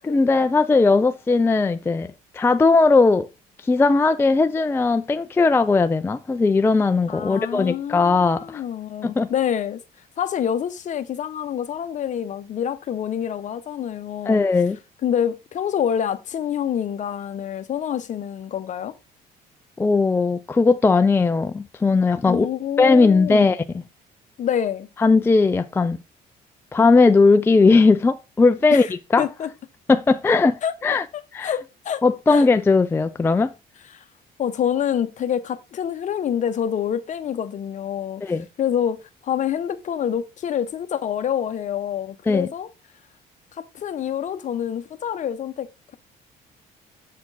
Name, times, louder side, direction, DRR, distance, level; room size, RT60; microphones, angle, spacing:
voice 1, 0.1-3.3 3.6-8.6 9.0-9.3 14.3-14.8 19.8-22.5 22.8-23.6 25.0-26.0 26.7-28.9 29.1-29.3 29.9-31.1 31.3-31.5 32.0-33.5 38.2-38.5 42.3-42.5, left 3 dB, 15° left, 0.3 m, -18 dB
voice 2, 7.1-9.8 10.2-14.4 15.0-18.9 22.3-23.6 24.4-24.9 28.7-28.9 29.2-29.5 30.6-30.7 31.1-32.0 32.3-32.5 33.9-34.0 34.4-38.2 38.6-42.7 43.5-46.0, left 9 dB, 45° left, 0.8 m, -27 dB
7.2 x 4.3 x 4.0 m
cardioid pair, 110°, 17 cm